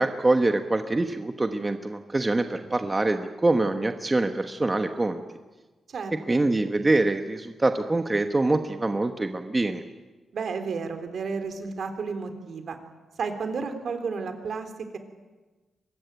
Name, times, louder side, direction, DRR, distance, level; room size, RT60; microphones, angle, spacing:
voice 1, 0.0-5.2 6.3-9.8, right 2 dB, 20° right, 6 dB, 1.2 m, -24 dB
voice 2, 5.9-6.4 10.3-12.8 13.2-15.0, right 5 dB, 65° right, 7 dB, 3.4 m, -32 dB
24.0 x 20.5 x 9.2 m, 1.2 s
wide cardioid pair, 120°, 0 cm